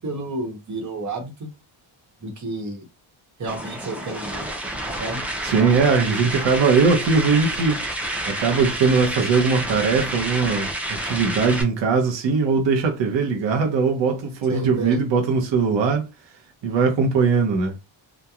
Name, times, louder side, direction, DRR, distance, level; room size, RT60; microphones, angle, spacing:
voice 1, 0.0-1.5 2.2-2.8 3.4-4.4 5.0-5.2 14.5-15.0, right 2 dB, 35° right, 1.0 m, -30 dB
sound 1, 3.5-11.6, right 1 dB, 5° right, 0.4 m, -29 dB
voice 2, 5.4-8.0 8.3-16.1 16.6-17.7, right 5 dB, 60° right, 0.8 m, -20 dB
2.9 x 2.2 x 2.3 m
wide cardioid pair, 145°, 48 cm